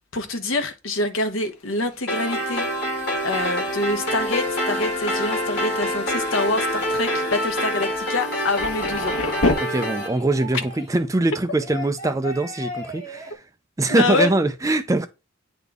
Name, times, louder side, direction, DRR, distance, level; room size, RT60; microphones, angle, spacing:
voice 1, 0.1-2.7 3.2-9.1 13.9-14.3, left 2 dB, 65° left, 1.1 m, -26 dB
Thunder, 1.4-9.5, left 2 dB, 90° left, 1.0 m, -32 dB
sound 1, 2.1-10.1, equal, 50° left, 2.2 m, -26 dB
sound 2, 8.5-11.0 11.6-13.3, left 1 dB, 20° left, 2.8 m, -37 dB
voice 2, 9.6-13.4 13.8-15.1, right 2 dB, 15° right, 0.3 m, -22 dB
9.2 x 3.6 x 3.5 m
head